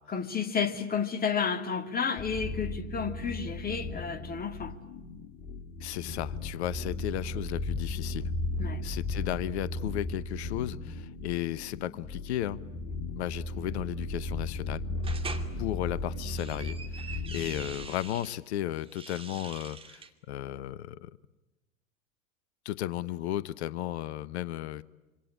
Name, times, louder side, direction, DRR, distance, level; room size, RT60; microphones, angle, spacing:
voice 1, 0.1-4.8 8.6-8.8, left 6 dB, 25° left, 8 dB, 2.4 m, -31 dB
sound 1, 2.2-17.9, left 2 dB, 40° left, 2.8 m, -36 dB
voice 2, 5.8-8.3 8.8-12.6 13.1-14.8 15.6-21.1 22.6-24.8, left 13 dB, 55° left, 19 dB, 0.9 m, -34 dB
sound 2, 15.0-15.5 16.1-18.4 18.8-20.1, right 5 dB, 15° right, 2.6 m, -43 dB
27.0 x 25.5 x 8.7 m, 1.1 s
figure-of-eight pair, 85°, 39 cm